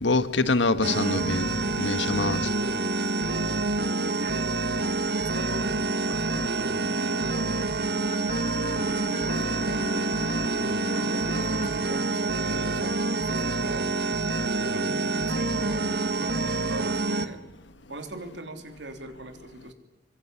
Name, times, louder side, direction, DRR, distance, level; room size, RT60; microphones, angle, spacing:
voice 1, 0.0-1.5 1.8-2.4, left 3 dB, 90° left, 1.6 m, -24 dB
sound 1, 0.8-17.3, right 3 dB, 60° right, 1.5 m, -27 dB
voice 2, 3.0-4.5 5.2-5.7 6.0-7.8 8.8-10.1 10.9-13.9 14.7-17.4 17.9-19.7, right 1 dB, 75° right, 3.6 m, -40 dB
Bowed string instrument, 8.1-12.1, left 1 dB, 40° left, 1.7 m, -39 dB
24.5 x 23.5 x 9.9 m
head